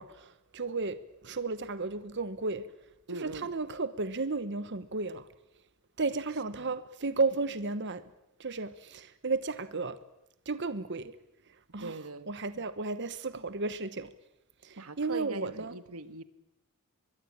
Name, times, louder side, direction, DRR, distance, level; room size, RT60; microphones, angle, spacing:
voice 1, 0.0-2.7 3.1-5.3 6.0-8.0 8.4-10.0 10.5-11.1 11.7-12.0 12.3-14.1 14.6-15.7, right 3 dB, 55° right, 1.1 m, -33 dB
voice 2, 3.1-3.5 6.7-6.8 11.8-12.4 14.8-16.2, right 3 dB, 75° right, 1.6 m, -41 dB
24.5 x 22.0 x 8.7 m
head